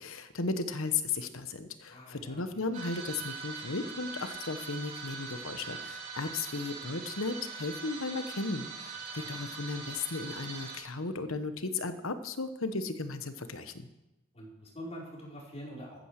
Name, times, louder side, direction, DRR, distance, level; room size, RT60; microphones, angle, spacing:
voice 1, 0.0-13.9, left 3 dB, 70° left, 10 dB, 1.2 m, -35 dB
voice 2, 1.9-2.6 9.1-9.4 14.3-16.0, equal, 30° left, -4 dB, 4.6 m, -45 dB
sound 1, 2.7-10.8, right 5 dB, 40° right, 3.6 m, -42 dB
14.0 x 9.1 x 6.6 m, 0.98 s
head